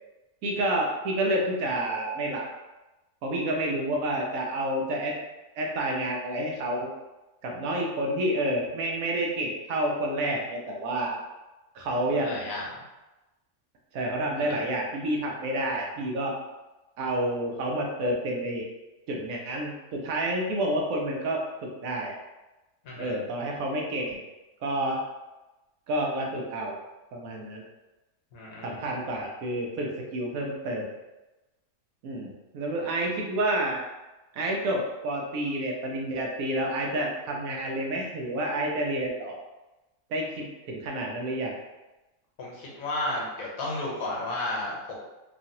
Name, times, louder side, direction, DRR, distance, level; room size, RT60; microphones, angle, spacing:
voice 1, 0.4-2.5 3.2-5.2 5.5-6.9 7.4-11.2 11.7-12.5 13.9-16.3 17.0-18.7 19.1-22.1 23.0-24.2 24.6-25.0 25.9-26.8 27.1-27.6 28.6-30.9 32.0-33.8 34.3-39.4 40.1-41.5, right 1 dB, 75° right, 0 dB, 1.0 m, -29 dB
voice 2, 12.1-12.7 14.3-14.5 22.8-23.1 28.3-28.9 42.4-45.0, left 2 dB, 75° left, -3 dB, 1.3 m, -33 dB
3.0 x 2.4 x 2.7 m, 1.1 s
omnidirectional pair, 1.5 m